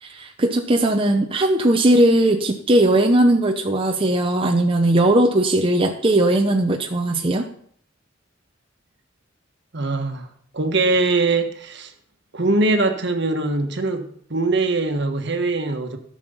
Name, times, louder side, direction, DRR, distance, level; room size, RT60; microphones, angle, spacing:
voice 1, 0.0-7.5, right 1 dB, 25° right, 3 dB, 0.7 m, -18 dB
voice 2, 9.7-10.3 10.5-11.9 12.3-14.0 14.3-16.0, right 3 dB, 60° right, 5 dB, 1.3 m, -22 dB
13.5 x 6.3 x 5.5 m, 0.63 s
head